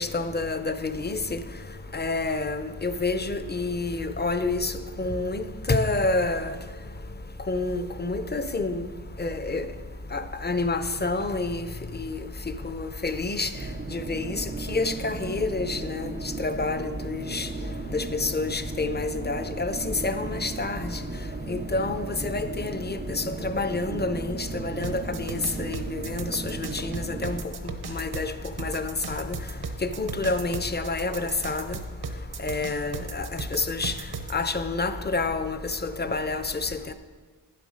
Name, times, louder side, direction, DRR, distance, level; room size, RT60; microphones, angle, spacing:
voice 1, 0.0-1.4 1.9-6.6 7.5-8.9 9.2-9.7 10.1-11.7 11.9-12.2 12.6-13.5 13.9-16.1 16.4-17.5 17.9-21.0 21.5-27.4 27.9-28.3 28.6-29.4 29.8-31.8 32.4-33.9 34.3-36.9, left 3 dB, 25° left, 11 dB, 0.6 m, -28 dB
sound 1, 13.5-27.4, right 4 dB, 30° right, 0.4 m, -37 dB
sound 2, 24.8-34.3, right 5 dB, 85° right, 0.9 m, -36 dB
10.0 x 7.7 x 5.1 m, 1.4 s
wide cardioid pair, 75°, 37 cm